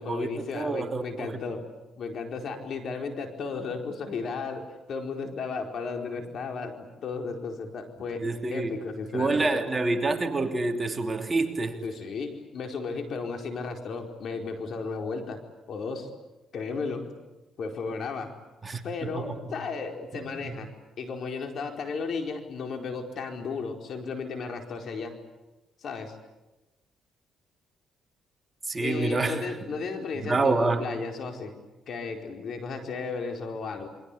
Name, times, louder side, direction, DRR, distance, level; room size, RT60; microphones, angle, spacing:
voice 1, 0.0-1.7 2.0-9.6 11.8-15.4 15.7-16.1 16.5-17.1 17.6-18.3 18.8-25.1 25.8-26.1 28.8-31.6 31.9-33.9, left 4 dB, 60° left, 4.7 m, -34 dB
voice 2, 0.5-1.4 8.2-8.7 9.1-11.8 18.6-19.5 20.1-20.5 28.7-29.6 30.2-30.9, right 3 dB, 25° right, 3.1 m, -27 dB
28.5 x 24.0 x 8.6 m
cardioid pair, 90°, 0 cm